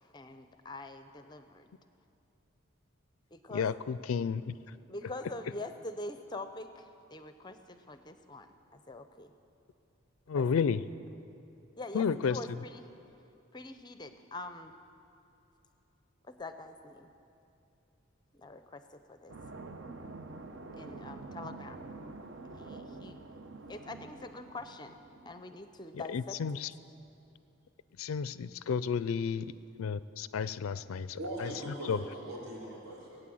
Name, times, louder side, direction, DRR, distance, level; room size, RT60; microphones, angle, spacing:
voice 1, 0.0-1.7 3.3-3.7 4.9-9.3 10.3-10.7 11.8-12.9 13.5-14.8 16.3-17.1 18.3-19.3 20.7-21.8 22.5-23.2 23.7-25.0 25.3-26.6, left 2 dB, 20° left, 9 dB, 0.5 m, -44 dB
voice 2, 3.5-4.5 10.3-10.9 11.9-12.4 25.9-26.7 28.0-29.5 29.8-32.0, left 6 dB, 80° left, 16 dB, 0.4 m, -32 dB
sound 1, 19.3-25.7, right 3 dB, 60° right, 0.8 m, -47 dB
voice 3, 31.1-33.2, right 1 dB, 75° right, -6 dB, 4.4 m, -41 dB
18.5 x 9.2 x 7.7 m, 2.7 s
head